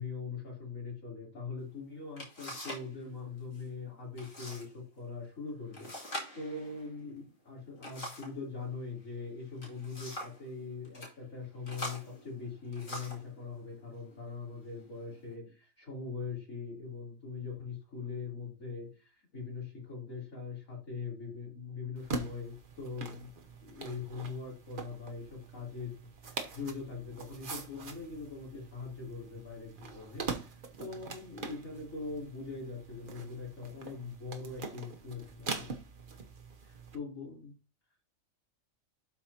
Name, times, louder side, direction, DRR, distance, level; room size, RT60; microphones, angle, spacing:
voice 1, 0.0-6.0 6.3-23.3 23.6-35.7 36.9-37.5, left 4 dB, 80° left, -3 dB, 3.9 m, -42 dB
sound 1, 1.7-1.8 2.2-2.9 3.2-3.7 4.2-4.7 5.0-5.1 5.7-8.4 9.4-10.4 10.8-11.1 11.6-13.3 14.1-14.2 14.8-15.3, equal, 60° left, 3.0 m, -43 dB
sound 2, 22.0-37.0, right 4 dB, 45° right, 1.0 m, -43 dB
12.0 x 4.6 x 2.9 m, 0.33 s
omnidirectional pair, 1.4 m